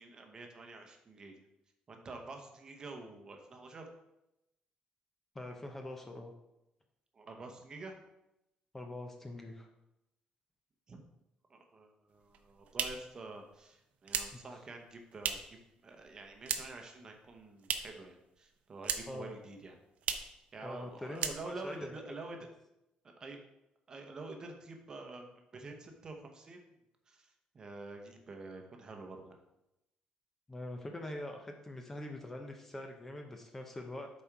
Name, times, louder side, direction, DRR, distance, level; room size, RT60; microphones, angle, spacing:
voice 1, 0.0-1.4 1.9-3.8 7.1-7.9 10.9-11.0 11.5-19.7 20.5-22.4 23.2-23.4 23.9-26.7 27.1-29.4, right 3 dB, 30° right, 4 dB, 0.9 m, -48 dB
voice 2, 5.3-6.3 8.7-9.7 14.3-14.4 19.1-19.3 20.6-22.0 30.5-34.1, left 1 dB, 15° left, 3 dB, 0.6 m, -44 dB
sound 1, 12.2-15.6 15.9-16.9 17.2-18.1 18.4-19.3 19.5-19.6 20.0-20.4 20.7-20.9 21.1-21.8, right 7 dB, 60° right, 0.6 m, -38 dB
7.3 x 4.3 x 4.7 m, 0.89 s
cardioid pair, 160°, 3 cm